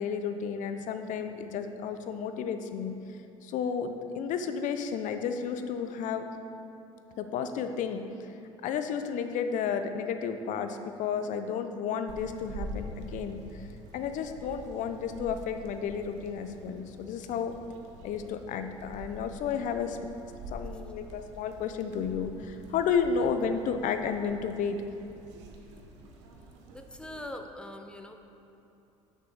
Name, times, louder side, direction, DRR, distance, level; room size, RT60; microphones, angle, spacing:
voice 1, 0.0-3.0 3.4-6.3 7.2-8.4 8.6-13.7 13.9-17.5 18.0-20.0 20.5-24.8, left 6 dB, 60° left, 8 dB, 0.7 m, -32 dB
sound 1, 12.1-27.3, right 1 dB, 85° right, 1.0 m, -46 dB
voice 2, 26.7-28.2, left 1 dB, 5° left, 5 dB, 0.8 m, -42 dB
6.4 x 6.2 x 6.8 m, 2.8 s
hypercardioid pair, 75°, 15 cm